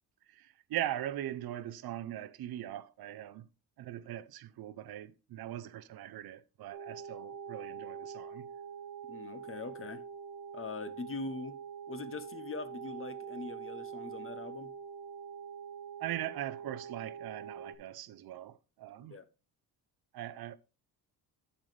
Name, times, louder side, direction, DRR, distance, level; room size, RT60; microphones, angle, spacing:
voice 1, 0.3-3.5 3.8-8.5 16.0-19.2 20.1-20.6, right 12 dB, 65° right, 0.8 m, -40 dB
sound 1, 6.7-17.8, right 7 dB, 80° right, 2.0 m, -45 dB
voice 2, 9.1-10.0 10.5-11.6 11.9-14.7 19.1-19.3, left 4 dB, 35° left, 0.9 m, -42 dB
8.2 x 7.3 x 3.3 m
cardioid pair, 115°, 40 cm